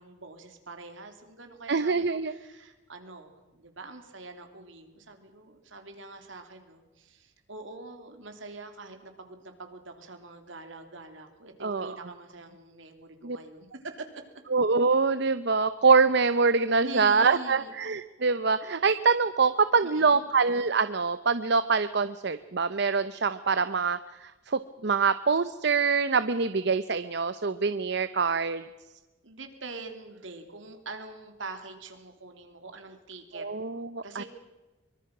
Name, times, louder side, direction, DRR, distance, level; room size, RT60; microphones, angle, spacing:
voice 1, 0.0-14.2 16.8-17.7 19.8-20.3 29.2-33.5 34.0-34.2, right 3 dB, 75° right, 6 dB, 3.3 m, -44 dB
voice 2, 1.7-2.3 11.6-11.9 13.2-13.4 14.5-28.6 33.3-34.2, right 4 dB, 60° right, 13 dB, 0.7 m, -25 dB
24.0 x 24.0 x 6.1 m, 1.1 s
head